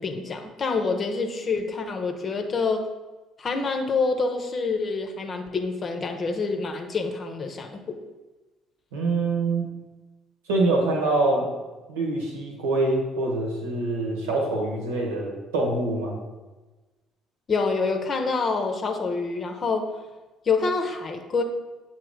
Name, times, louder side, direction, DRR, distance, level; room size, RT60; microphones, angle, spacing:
voice 1, 0.0-2.8 3.4-8.0 17.5-19.9 20.4-21.4, left 4 dB, 40° left, 4 dB, 0.8 m, -27 dB
voice 2, 8.9-9.7 10.5-11.4 11.9-16.1, right 2 dB, 75° right, 0 dB, 1.2 m, -25 dB
7.7 x 2.8 x 5.0 m, 1.2 s
figure-of-eight pair, 50°, 0 cm